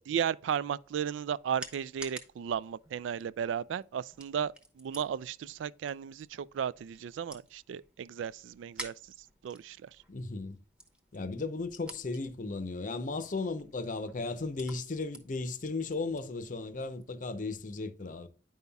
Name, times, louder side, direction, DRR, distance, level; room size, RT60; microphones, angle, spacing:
voice 1, 0.0-9.9, right 8 dB, 90° right, 0.3 m, -35 dB
sound 1, 0.8-17.2, right 1 dB, 5° right, 0.8 m, -52 dB
voice 2, 10.1-10.6 11.1-18.3, left 3 dB, 45° left, 0.6 m, -36 dB
9.2 x 5.5 x 2.2 m
head